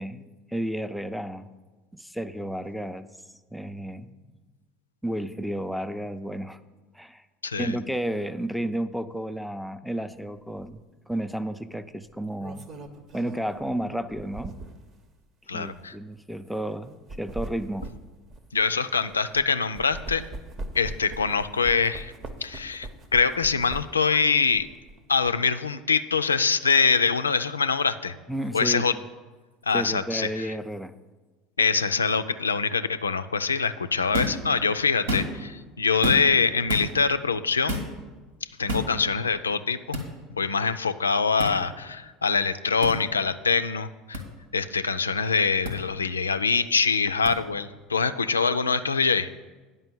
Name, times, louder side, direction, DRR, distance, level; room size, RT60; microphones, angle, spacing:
voice 1, 0.0-1.5 1.9-3.1 3.5-4.2 5.0-6.6 6.9-7.2 7.6-12.7 13.1-14.5 15.5-17.9 28.3-28.8 29.7-30.9, right 1 dB, ahead, 10 dB, 0.5 m, -32 dB
sound 1, 10.6-10.8 12.1-14.9 15.6-15.8 16.8-19.4 19.7-24.1 24.5-25.3, right 2 dB, 40° right, 0.9 m, -40 dB
voice 2, 15.5-16.0 18.5-20.2 20.7-22.1 22.4-24.7 25.1-28.2 28.5-28.9 29.7-30.5 31.6-37.8 38.6-39.8 40.3-44.2 44.5-49.3, left 5 dB, 85° left, 12 dB, 0.4 m, -24 dB
sound 2, 34.1-34.4 34.9-35.5 36.0-36.4 36.7-36.9 37.7-37.9 38.7-38.9 39.9-40.1 41.4-41.5 42.8-43.0 44.1-44.2 45.6-45.8 47.3-47.4, left 1 dB, 80° right, 1.6 m, -28 dB
9.6 x 5.4 x 7.1 m, 1.3 s
figure-of-eight pair, 70°, 0 cm